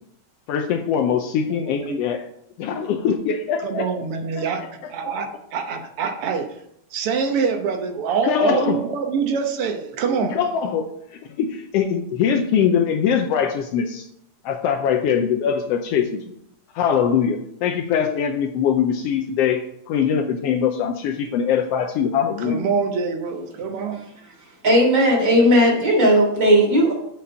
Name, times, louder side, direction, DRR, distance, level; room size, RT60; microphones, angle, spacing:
voice 1, 0.5-2.2 2.6-3.8 4.4-4.5 8.2-8.8 10.3-14.1 14.4-16.2 16.7-22.6, left 7 dB, 80° left, 5 dB, 1.4 m, -22 dB
voice 2, 1.5-2.0 3.6-4.6 4.9-6.6 6.9-10.4 22.4-24.0, right 5 dB, 65° right, 5 dB, 1.4 m, -25 dB
voice 3, 24.6-26.9, equal, 40° right, -2 dB, 3.9 m, -16 dB
7.6 x 5.7 x 5.6 m, 0.72 s
omnidirectional pair, 3.4 m